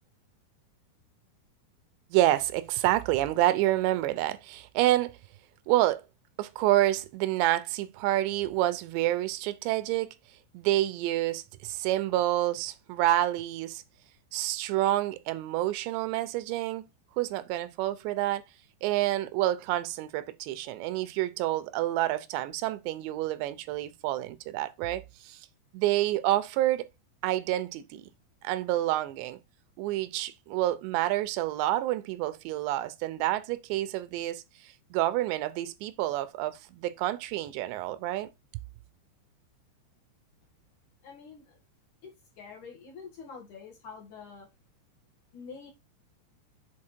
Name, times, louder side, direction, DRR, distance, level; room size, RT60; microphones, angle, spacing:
voice 1, 2.1-5.2 5.7-6.0 6.4-10.1 10.5-13.8 14.3-16.9 17.2-18.4 18.8-25.4 25.7-26.9 27.2-28.1 28.4-29.4 29.8-38.3, right 15 dB, 85° right, 2.8 m, -28 dB
voice 2, 41.0-41.6 42.0-44.5 45.3-45.7, left 5 dB, 55° left, 2.7 m, -46 dB
7.5 x 4.1 x 4.4 m
omnidirectional pair, 5.0 m